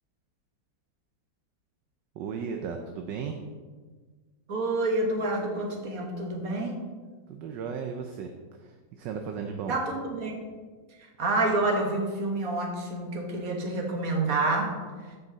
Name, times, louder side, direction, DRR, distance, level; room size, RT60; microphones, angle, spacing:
voice 1, 2.1-3.4 7.3-8.3 8.6-9.8, right 6 dB, 75° right, 4 dB, 1.3 m, -35 dB
voice 2, 4.5-6.8 9.7-10.3 11.2-14.7, right 2 dB, 50° right, 1 dB, 1.7 m, -28 dB
14.0 x 5.4 x 3.9 m, 1.4 s
omnidirectional pair, 2.1 m